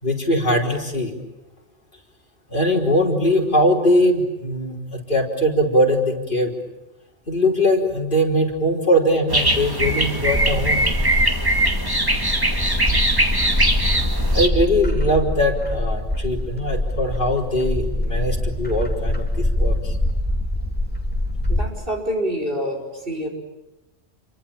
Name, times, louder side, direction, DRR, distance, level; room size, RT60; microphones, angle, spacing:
voice 1, 0.0-1.1 2.5-6.5 7.3-10.9 14.3-20.0, equal, 45° left, -1 dB, 4.5 m, -21 dB
sound 1, 9.3-14.5, right 1 dB, 20° right, 2.2 m, -21 dB
Bird, 10.3-21.6, left 1 dB, 10° left, 3.0 m, -24 dB
voice 2, 21.5-22.8 23.1-23.3, equal, 50° right, 1 dB, 5.3 m, -26 dB
28.0 x 24.0 x 8.9 m, 0.97 s
omnidirectional pair, 1.2 m